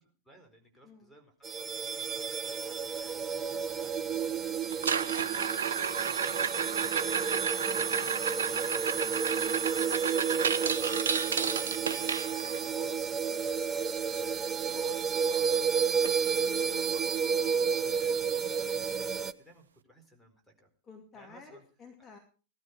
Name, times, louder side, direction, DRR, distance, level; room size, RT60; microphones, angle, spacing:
voice 1, 0.2-17.0 17.8-20.7 21.1-21.7 22.0-22.1, right 1 dB, ahead, 2 dB, 4.6 m, -57 dB
sound 1, 1.4-19.3, right 6 dB, 25° right, 0.8 m, -31 dB
sound 2, 4.7-12.7 15.0-15.1 15.3-15.6 16.0-16.1 16.7-16.8 18.7-18.8, right 6 dB, 70° right, 0.6 m, -32 dB
voice 2, 20.8-22.2, left 4 dB, 20° left, 2 dB, 2.5 m, -52 dB
17.5 x 13.0 x 4.7 m, 0.37 s
figure-of-eight pair, 90°, 0 cm